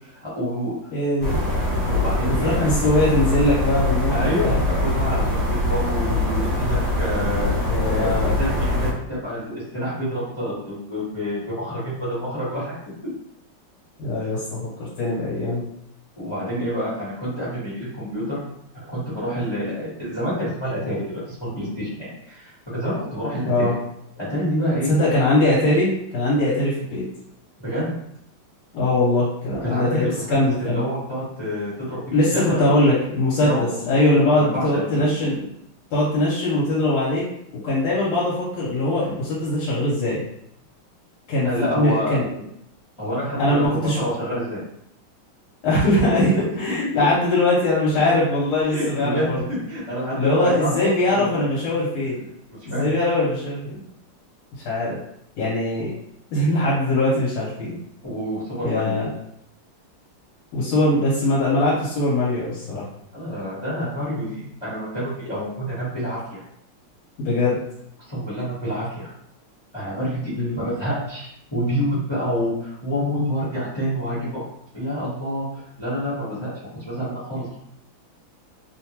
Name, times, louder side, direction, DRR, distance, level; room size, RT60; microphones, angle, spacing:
voice 1, 0.2-0.7 1.8-2.6 4.1-7.5 7.8-12.7 16.2-18.4 18.9-23.7 24.2-24.9 27.6-27.9 29.6-32.0 32.3-32.7 33.4-34.9 41.4-42.2 43.0-44.6 48.7-50.8 51.1-51.4 52.7-52.9 58.0-59.0 63.1-66.4 68.1-69.1 69.7-74.4 74.7-76.5 76.8-77.6, equal, 20° left, -10 dB, 0.7 m, -27 dB
voice 2, 0.9-1.4 2.4-4.6 7.7-8.3 14.0-15.6 23.4-23.7 24.9-27.0 28.7-30.8 32.1-35.4 35.9-37.2 37.6-40.2 41.3-42.3 43.4-44.0 45.6-49.4 50.1-52.2 52.7-53.8 54.6-55.0 55.4-55.9 56.3-57.8 58.6-59.1 60.5-62.9 67.2-67.6 70.3-70.6, left 1 dB, 75° left, -7 dB, 1.6 m, -21 dB
sound 1, 1.2-8.9, left 1 dB, 60° right, 1.3 m, -23 dB
3.5 x 2.2 x 2.9 m, 0.76 s
omnidirectional pair, 2.4 m